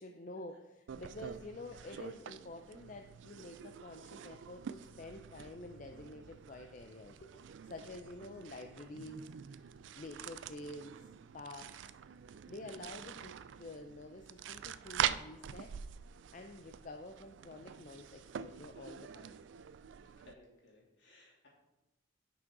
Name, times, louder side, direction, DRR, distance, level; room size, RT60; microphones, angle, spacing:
voice 1, 0.0-9.7 10.0-11.1 11.3-11.9 12.5-15.7 16.3-19.4, left 2 dB, 40° left, 5 dB, 0.5 m, -49 dB
sound 1, 0.9-20.3, right 9 dB, 65° right, 0.3 m, -45 dB
voice 2, 20.3-21.5, left 2 dB, 65° left, -3 dB, 2.9 m, -61 dB
10.5 x 6.2 x 3.9 m, 0.97 s
head